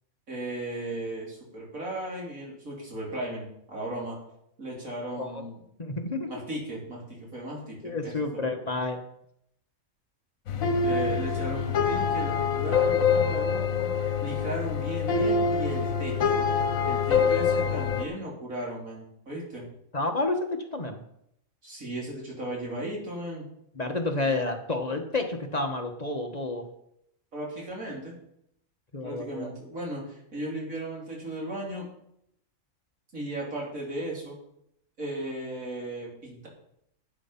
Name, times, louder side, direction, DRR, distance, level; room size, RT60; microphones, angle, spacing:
voice 1, 0.3-4.2 4.6-5.6 6.3-8.5 10.8-16.4 16.8-19.7 21.6-23.5 27.3-28.1 29.0-31.9 33.1-34.3 35.0-36.5, right 1 dB, 80° right, -3 dB, 4.0 m, -36 dB
voice 2, 5.8-6.3 7.8-9.0 19.9-21.0 23.8-26.7 28.9-29.5, left 2 dB, 30° left, 4 dB, 1.2 m, -30 dB
sound 1, 10.5-18.0, left 5 dB, 80° left, 1.4 m, -25 dB
12.0 x 8.4 x 5.7 m, 0.76 s
omnidirectional pair, 1.4 m